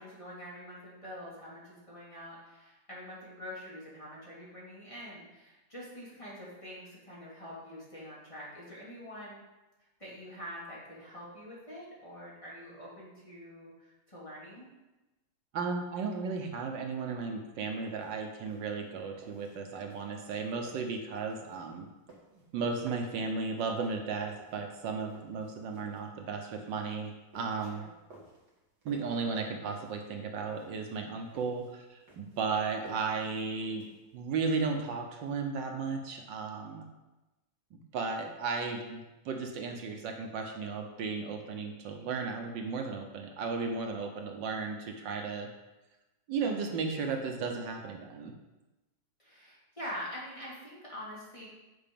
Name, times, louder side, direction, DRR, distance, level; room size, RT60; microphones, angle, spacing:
voice 1, 0.0-9.4 10.0-14.7 27.7-27.9 46.4-46.7 49.2-51.5, equal, 15° left, -7 dB, 2.4 m, -45 dB
voice 2, 15.5-21.9 22.5-27.8 28.8-33.9 34.1-36.9 37.7-45.5 46.3-48.3, right 4 dB, 75° right, 3 dB, 1.6 m, -35 dB
sound 1, 17.6-34.3, right 2 dB, 60° right, 2.3 m, -57 dB
8.8 x 5.0 x 5.3 m, 1.0 s
omnidirectional pair, 2.0 m